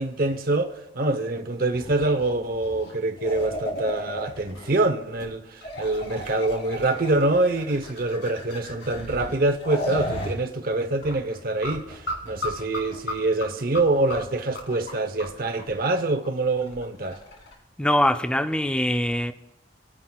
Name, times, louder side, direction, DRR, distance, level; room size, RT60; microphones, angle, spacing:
voice 1, 0.0-17.2, right 2 dB, 50° right, 0.8 m, -25 dB
sound 1, 1.7-4.9 5.2-5.3 5.6-10.3 10.6-10.8 11.0-17.5, left 1 dB, 70° left, 2.6 m, -34 dB
voice 2, 17.8-19.3, left 1 dB, 5° left, 0.4 m, -23 dB
21.5 x 9.8 x 2.3 m
head